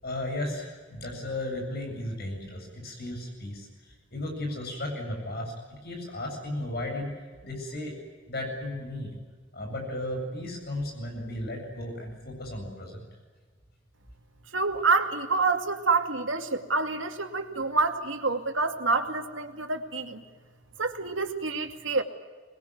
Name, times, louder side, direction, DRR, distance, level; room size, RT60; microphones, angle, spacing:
voice 1, 0.0-7.1 7.4-7.9 8.3-9.2 9.5-13.1, left 1 dB, 55° left, 2 dB, 7.9 m, -35 dB
voice 2, 14.5-20.2 20.8-22.0, right 3 dB, 80° right, 5 dB, 2.5 m, -27 dB
25.5 x 21.5 x 9.4 m, 1.4 s
head